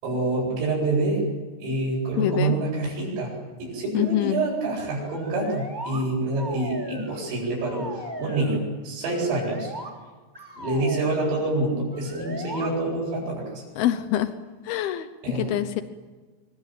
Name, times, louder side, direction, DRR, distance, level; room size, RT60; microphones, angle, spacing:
voice 1, 0.0-1.2 1.6-3.3 3.6-9.7 10.6-13.6 15.2-15.5, right 2 dB, 75° right, -6 dB, 11.0 m, -27 dB
voice 2, 2.2-2.6 3.9-4.4 13.8-14.3 14.6-15.8, left 12 dB, 80° left, 10 dB, 2.2 m, -25 dB
sound 1, 4.9-6.0 6.4-7.3 7.6-8.6 9.1-9.9 10.3-11.3 11.9-12.7, right 1 dB, 5° right, 3.3 m, -37 dB
26.5 x 24.0 x 9.3 m, 1.4 s
omnidirectional pair, 5.9 m